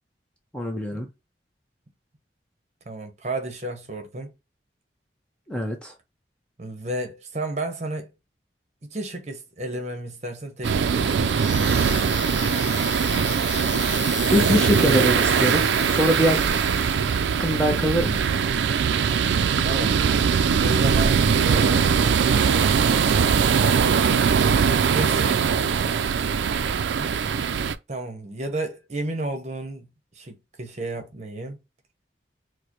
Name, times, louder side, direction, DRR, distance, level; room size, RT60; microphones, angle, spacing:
voice 1, 0.5-1.1 5.5-5.9 14.3-16.4 17.4-18.2, equal, 5° left, 0.5 m, -23 dB
voice 2, 2.9-4.3 6.6-8.1 8.9-11.8 19.6-20.0 20.6-21.2 21.5-21.9 24.9-25.4 27.0-27.3 27.9-29.9 30.1-31.6, right 2 dB, 40° right, 0.9 m, -32 dB
sound 1, 10.6-27.7, right 6 dB, 75° right, 0.3 m, -21 dB
sound 2, 10.9-16.9, left 6 dB, 90° left, 0.8 m, -35 dB
4.8 x 2.1 x 2.9 m
head